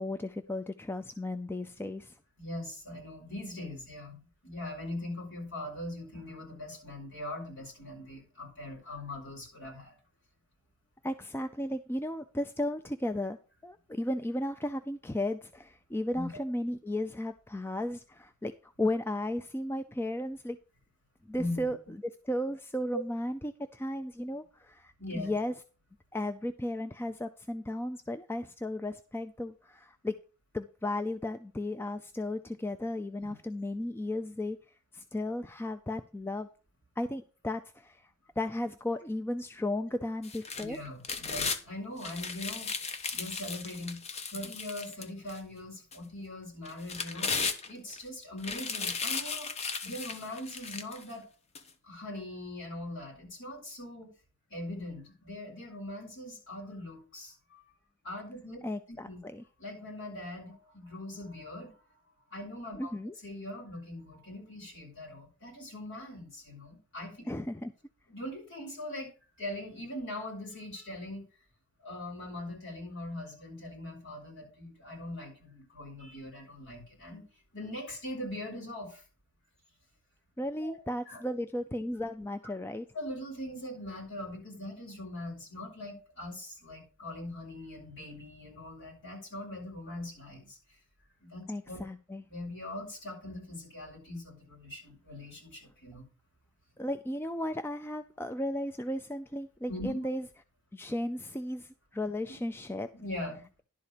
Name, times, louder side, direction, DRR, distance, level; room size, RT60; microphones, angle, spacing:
voice 1, 0.0-2.2 11.0-13.4 13.6-20.6 21.3-25.5 26.1-30.1 30.5-34.6 34.9-36.5 37.0-40.8 58.6-59.4 62.8-63.1 67.3-67.7 80.4-82.9 91.5-92.2 96.8-100.3 100.7-102.9, left 1 dB, 10° left, 8 dB, 0.3 m, -35 dB
voice 2, 2.4-10.0 16.1-16.4 21.3-21.7 22.9-23.0 25.0-25.3 33.2-33.3 40.6-42.7 43.1-44.0 44.3-47.3 47.7-49.6 49.8-51.3 51.8-54.1 54.5-57.6 58.0-58.6 58.9-59.2 59.6-62.0 62.3-62.9 63.2-67.2 68.1-69.1 69.4-71.2 71.8-77.2 77.5-79.0 80.6-80.8 81.1-81.2 82.9-90.6 91.2-91.9 92.3-96.1 99.7-100.1 102.9-103.4, left 1 dB, 55° left, -2 dB, 5.8 m, -41 dB
sound 1, 40.2-41.6 42.0-45.4 45.9-46.0 46.6-48.0 48.4-51.0 51.5-51.6, left 5 dB, 30° left, 0.8 m, -35 dB
11.5 x 4.2 x 6.6 m, 0.35 s
head